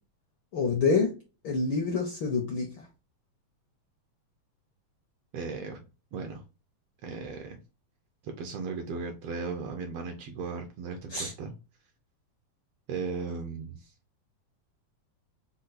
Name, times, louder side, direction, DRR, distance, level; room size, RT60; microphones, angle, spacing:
voice 1, 0.5-1.1 1.4-2.8 11.1-11.3, left 4 dB, 80° left, 1.1 m, -27 dB
voice 2, 5.3-5.8 6.1-6.4 7.0-7.6 8.2-11.5 12.9-13.9, right 4 dB, 75° right, 1.5 m, -36 dB
5.2 x 2.3 x 4.0 m
omnidirectional pair, 3.3 m